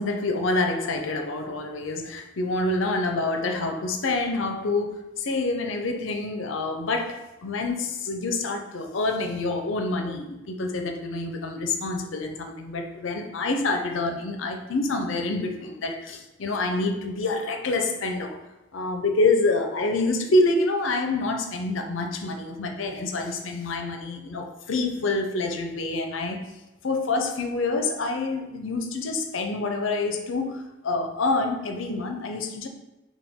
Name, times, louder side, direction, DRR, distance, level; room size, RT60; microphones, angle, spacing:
voice 1, 0.0-18.4 18.7-26.4 26.8-32.7, left 2 dB, 75° left, 4 dB, 0.6 m, -27 dB
5.9 x 2.3 x 3.6 m, 1.0 s
head